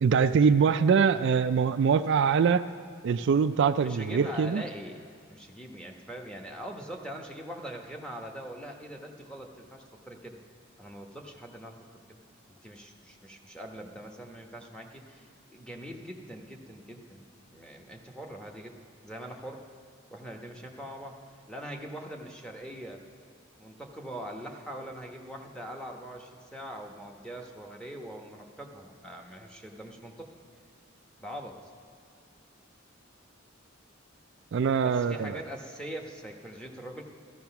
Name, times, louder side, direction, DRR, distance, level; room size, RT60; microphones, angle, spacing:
voice 1, 0.0-2.7 3.0-4.6 34.5-35.4, right 6 dB, 60° right, 11 dB, 0.3 m, -23 dB
voice 2, 3.8-5.0 5.3-10.4 10.8-12.0 12.5-17.2 17.5-18.7 19.0-19.7 20.1-21.2 21.5-23.0 23.6-30.3 31.2-31.6 34.8-37.0, equal, 5° left, 1 dB, 1.1 m, -42 dB
14.0 x 13.5 x 5.8 m, 2.2 s
head